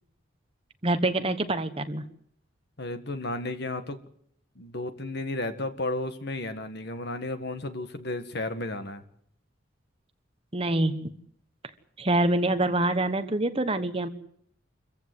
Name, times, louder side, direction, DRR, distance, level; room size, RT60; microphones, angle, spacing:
voice 1, 0.8-2.0 10.5-11.1 12.0-14.1, right 2 dB, 30° right, 9 dB, 1.2 m, -25 dB
voice 2, 2.8-4.0 4.6-9.0, left 2 dB, 55° left, 9 dB, 1.8 m, -33 dB
26.5 x 15.0 x 7.9 m, 0.68 s
head